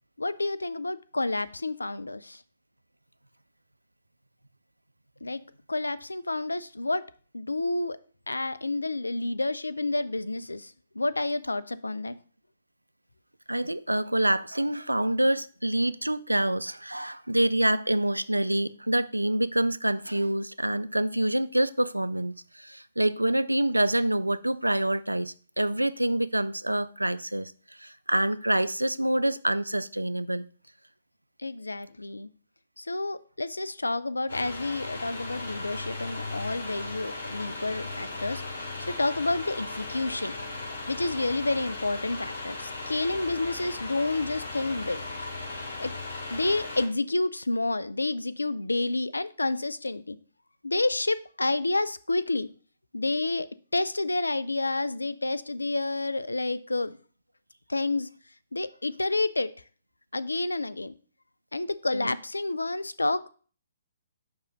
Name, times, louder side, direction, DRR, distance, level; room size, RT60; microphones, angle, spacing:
voice 1, 0.2-2.4 5.2-5.4 5.7-7.1 7.3-8.0 8.3-12.2 31.4-32.3 32.8-38.4 38.9-40.3 40.9-45.0 45.8-45.9 46.3-50.2 50.6-52.5 52.9-53.5 53.7-57.0 57.7-58.1 58.5-59.5 60.1-60.9 61.5-63.3, left 2 dB, 80° left, 0.4 m, -29 dB
voice 2, 13.5-27.5 27.8-30.5 61.9-62.2, right 1 dB, 90° right, 0.3 m, -26 dB
sound 1, 34.3-46.9, left 2 dB, 60° left, 2.6 m, -37 dB
5.5 x 3.4 x 5.2 m
figure-of-eight pair, 130°, 0 cm